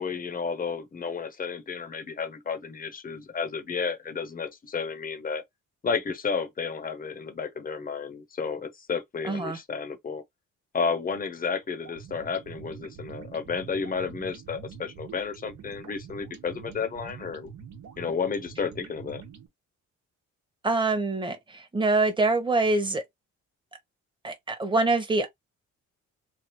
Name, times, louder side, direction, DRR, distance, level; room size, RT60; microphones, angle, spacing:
voice 1, 0.0-5.4 5.8-10.2 10.7-17.5 18.0-19.2, left 5 dB, 30° left, 0.8 m, -32 dB
voice 2, 9.2-9.6 20.6-23.0 24.2-25.3, right 3 dB, 15° right, 1.1 m, -25 dB
sound 1, 11.8-19.5, right 7 dB, 70° right, 1.2 m, -45 dB
3.4 x 2.3 x 3.0 m
cardioid pair, 90°, 30 cm